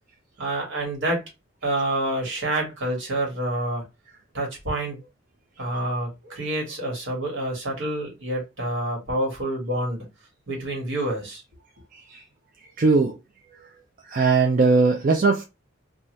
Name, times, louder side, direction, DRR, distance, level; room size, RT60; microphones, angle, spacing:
voice 1, 0.4-1.2 1.6-3.8 4.3-5.0 5.6-10.1 10.5-11.4, right 1 dB, 80° right, 1.4 m, -27 dB
voice 2, 12.8-13.1 14.1-15.4, right 4 dB, 45° right, 0.4 m, -19 dB
2.7 x 2.3 x 3.0 m
head